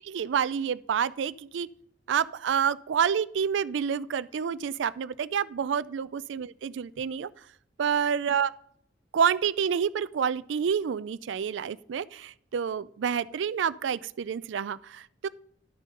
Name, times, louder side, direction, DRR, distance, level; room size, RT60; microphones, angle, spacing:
voice 1, 0.1-1.7 2.1-7.3 7.8-8.5 9.1-15.3, right 7 dB, 70° right, 18 dB, 0.4 m, -28 dB
12.0 x 6.4 x 3.8 m, 0.70 s
head